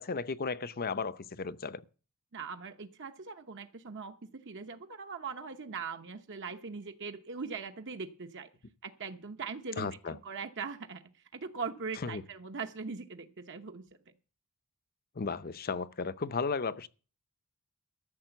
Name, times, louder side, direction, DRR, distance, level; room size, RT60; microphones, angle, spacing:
voice 1, 0.0-1.8 9.8-10.2 12.0-12.2 15.2-16.9, left 4 dB, 45° left, 0.7 m, -34 dB
voice 2, 2.3-8.5 8.8-11.0 11.3-13.8, right 5 dB, 55° right, 0.9 m, -41 dB
13.5 x 6.7 x 8.0 m
head